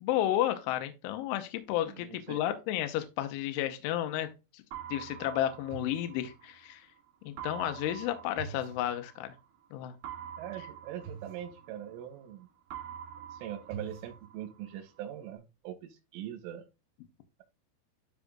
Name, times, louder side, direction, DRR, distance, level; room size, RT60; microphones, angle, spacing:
voice 1, 0.0-4.6 4.9-6.9 7.3-9.3 9.7-10.0, left 12 dB, 85° left, 3.2 m, -32 dB
voice 2, 1.9-2.4 10.4-12.5 13.3-16.7, right 11 dB, 90° right, 3.5 m, -42 dB
sound 1, 4.7-6.8 7.4-9.5 10.0-12.3 12.7-14.8, right 8 dB, 65° right, 2.7 m, -45 dB
12.5 x 4.6 x 2.4 m
omnidirectional pair, 5.6 m